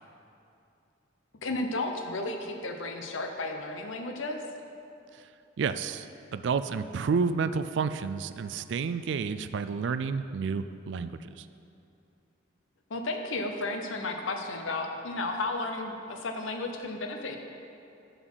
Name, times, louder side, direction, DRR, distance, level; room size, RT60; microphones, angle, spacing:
voice 1, 1.4-4.4 12.9-17.4, left 2 dB, 80° left, 4 dB, 0.8 m, -33 dB
voice 2, 5.6-11.5, right 5 dB, 65° right, 11 dB, 0.3 m, -30 dB
11.0 x 4.0 x 6.2 m, 2.7 s
head